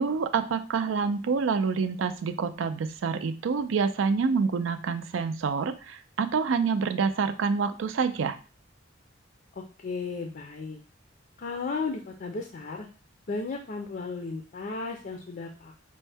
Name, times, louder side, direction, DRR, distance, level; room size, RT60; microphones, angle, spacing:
voice 1, 0.0-8.4, right 5 dB, 70° right, 10 dB, 0.4 m, -27 dB
voice 2, 9.6-10.8 11.4-12.9 13.3-15.8, left 4 dB, 45° left, 2 dB, 0.5 m, -35 dB
5.2 x 2.1 x 3.3 m, 0.35 s
head